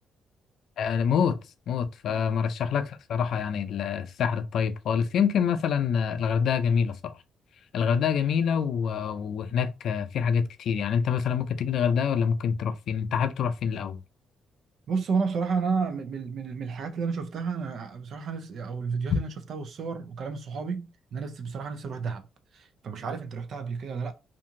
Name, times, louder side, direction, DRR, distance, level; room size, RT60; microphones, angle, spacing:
voice 1, 0.8-1.4 1.7-7.1 7.7-14.0, left 7 dB, 70° left, 0.4 m, -26 dB
voice 2, 14.9-22.3 22.5-24.1, right 5 dB, 60° right, 0.5 m, -31 dB
2.8 x 2.5 x 2.5 m
cardioid pair, 90°, 0 cm